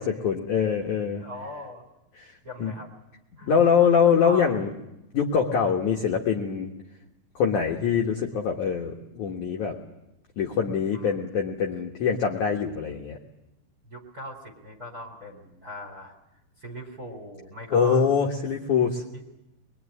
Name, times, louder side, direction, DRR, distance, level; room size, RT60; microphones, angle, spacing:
voice 1, 0.0-1.2 2.2-2.3 2.6-2.7 3.5-4.7 5.1-6.7 7.4-9.8 10.4-13.2 17.7-19.0, left 6 dB, 65° left, 1 dB, 1.9 m, -23 dB
voice 2, 1.1-1.8 2.4-2.9 3.4-3.5 4.2-4.6 10.9-11.3 13.8-16.1 16.6-18.0 19.1-19.2, equal, 25° right, 3 dB, 2.5 m, -39 dB
23.0 x 23.0 x 9.7 m, 0.93 s
omnidirectional pair, 5.7 m